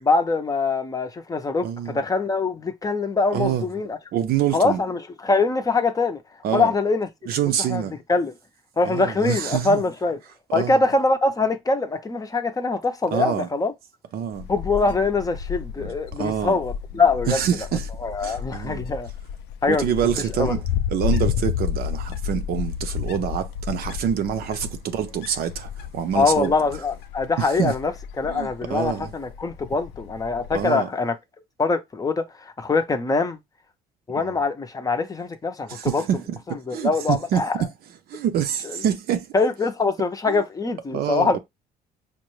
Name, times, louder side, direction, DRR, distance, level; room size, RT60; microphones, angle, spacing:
voice 1, 0.0-4.0 4.5-6.2 6.5-7.1 7.7-7.8 8.1-8.3 8.8-10.2 10.5-13.7 14.5-17.4 18.0-19.1 19.6-19.8 20.4-20.6 26.1-31.1 31.6-33.4 34.1-36.0 36.5-37.6 39.3-41.4, left 3 dB, 20° left, 0.6 m, -23 dB
voice 2, 1.6-2.0 3.3-3.7 4.1-4.8 6.4-6.7 7.3-8.0 8.8-9.8 10.5-10.8 13.1-13.5 14.1-14.5 15.8-16.6 17.3-17.9 18.2-18.8 19.7-20.6 20.9-26.5 27.4-27.7 28.3-29.1 30.5-30.9 34.1-34.4 35.7-36.4 36.7-37.7 38.1-39.3 40.3-40.4 40.9-41.4, right 9 dB, 65° right, 0.6 m, -26 dB
Wind, 14.3-30.6, left 9 dB, 85° left, 0.4 m, -31 dB
5.1 x 2.2 x 3.0 m
cardioid pair, 110°, 17 cm